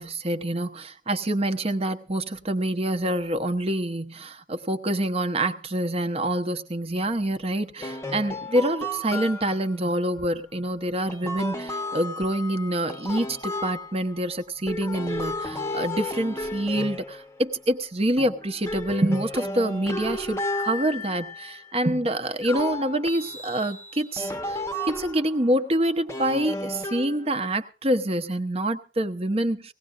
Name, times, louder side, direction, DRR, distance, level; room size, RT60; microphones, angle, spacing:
voice 1, 0.0-24.6 24.9-29.7, right 1 dB, 30° right, 7 dB, 0.9 m, -26 dB
sound 1, 7.8-9.8 11.1-14.3 14.7-17.7 18.2-21.7 22.4-25.5 26.1-27.5, left 1 dB, 15° left, 0.9 m, -33 dB
19.0 x 17.0 x 2.5 m, 0.31 s
head